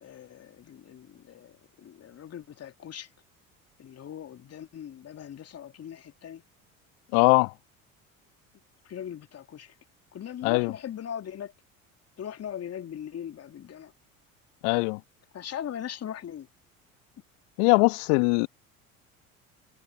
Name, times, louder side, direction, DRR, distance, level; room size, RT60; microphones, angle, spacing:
voice 1, 0.0-3.1 3.8-6.4 8.8-9.7 10.1-11.5 12.2-13.9 15.3-16.5, left 9 dB, 35° left, 3.0 m, -40 dB
voice 2, 7.1-7.5 10.4-10.7 14.6-15.0 17.6-18.5, left 39 dB, 60° left, 1.7 m, -21 dB
figure-of-eight pair, 65°, 42 cm